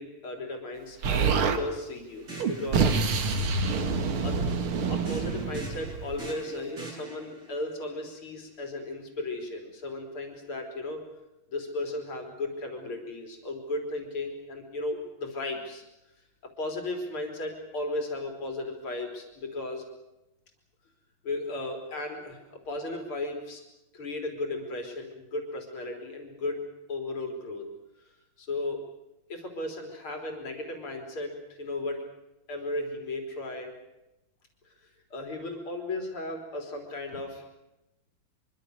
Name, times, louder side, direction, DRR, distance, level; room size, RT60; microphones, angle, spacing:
voice 1, 0.0-2.9 4.0-4.4 4.7-11.0 11.5-15.8 16.4-19.9 21.2-23.6 23.9-26.6 26.9-27.7 28.0-28.1 28.4-28.8 29.3-32.0 32.5-33.7 34.8-37.5, left 2 dB, 80° left, 3 dB, 4.5 m, -35 dB
Explosion, 1.0-1.6 2.4-6.3, right 5 dB, 80° right, 2.5 m, -27 dB
sound 1, 2.1-3.8 5.1-7.5, right 2 dB, 60° right, 8.1 m, -43 dB
24.5 x 24.0 x 6.5 m, 0.93 s
omnidirectional pair, 2.3 m